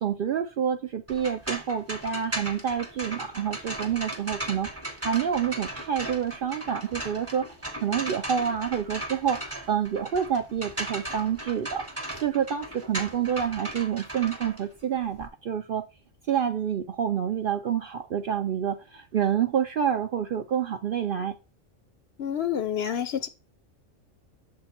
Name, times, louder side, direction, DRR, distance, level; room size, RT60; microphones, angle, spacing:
voice 1, 0.0-4.7 5.0-7.5 7.8-11.9 12.2-15.9 16.3-21.3, right 8 dB, 60° right, 0.6 m, -28 dB
sound 1, 1.1-15.3, right 1 dB, 10° right, 1.0 m, -37 dB
voice 2, 22.2-23.3, left 9 dB, 60° left, 0.7 m, -28 dB
6.7 x 3.8 x 4.2 m
omnidirectional pair, 1.3 m